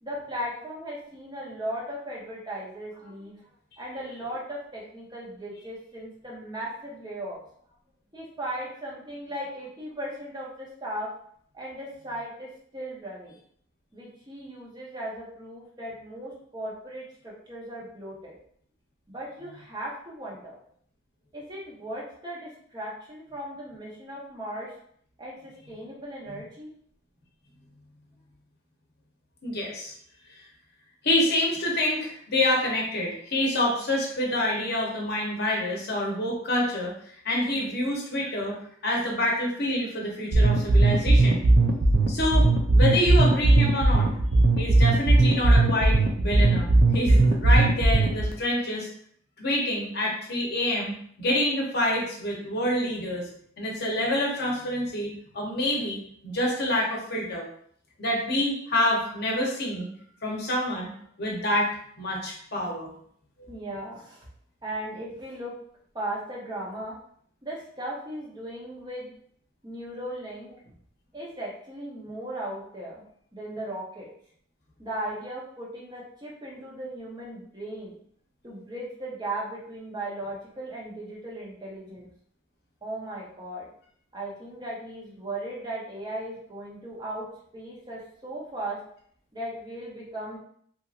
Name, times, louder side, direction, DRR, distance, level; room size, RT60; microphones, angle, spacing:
voice 1, 0.0-3.4 3.8-7.4 8.1-11.1 11.5-13.4 13.9-18.4 19.1-20.6 21.3-24.7 25.2-26.7 63.5-64.3 64.6-65.5 65.9-67.0 67.4-69.1 69.6-70.5 71.1-73.0 73.3-74.1 74.8-77.9 78.4-82.1 82.8-83.7 84.1-87.3 87.5-88.8 89.3-90.4, right 1 dB, 20° right, -5 dB, 0.7 m, -37 dB
voice 2, 29.4-29.9 30.3-30.4 31.0-36.9 37.2-38.6 38.8-41.4 42.1-44.1 44.6-46.7 46.9-48.9 49.4-53.3 53.6-57.5 58.0-59.9 60.2-60.9 61.2-61.7 62.0-62.9, left 1 dB, 50° left, -2 dB, 0.7 m, -27 dB
sound 1, 40.3-48.3, right 2 dB, 45° right, 0.4 m, -18 dB
2.8 x 2.6 x 2.4 m, 0.63 s
head